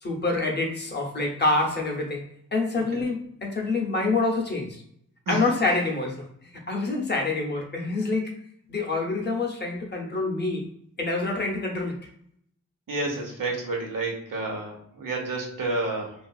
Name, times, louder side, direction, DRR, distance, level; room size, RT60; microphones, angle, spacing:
voice 1, 0.0-2.2 2.5-4.7 5.3-6.3 6.7-8.3 8.7-10.7 11.0-12.0, left 3 dB, 35° left, 0 dB, 0.6 m, -26 dB
voice 2, 12.9-16.1, right 2 dB, 85° right, 0 dB, 0.8 m, -30 dB
2.8 x 2.4 x 2.3 m, 0.70 s
wide cardioid pair, 130°, 32 cm